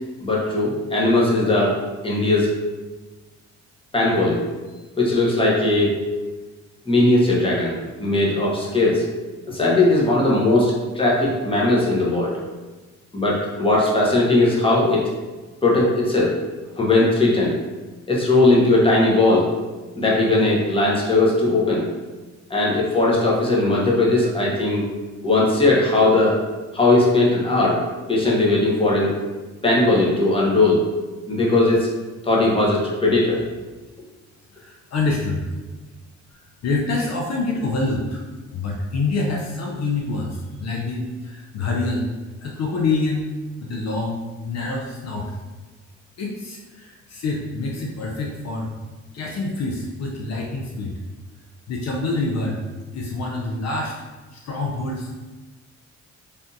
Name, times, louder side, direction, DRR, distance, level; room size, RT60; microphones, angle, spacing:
voice 1, 0.2-1.7 2.0-2.6 3.9-4.4 5.0-6.0 6.9-9.1 9.5-12.3 13.1-15.0 15.6-16.3 16.7-17.6 18.1-19.4 20.0-21.8 22.5-24.8 25.2-26.4 26.7-27.8 28.1-29.1 29.6-30.9 31.3-31.9 32.2-33.4, left 2 dB, 20° left, -4 dB, 0.9 m, -18 dB
voice 2, 34.5-35.5 36.6-38.2 38.5-42.1 42.4-43.3 43.6-45.3 46.2-48.7 49.1-51.0 51.7-52.6 52.9-53.9 54.3-55.2, left 3 dB, 60° left, -1 dB, 0.5 m, -26 dB
3.4 x 2.6 x 2.7 m, 1.2 s
cardioid pair, 90°, 30 cm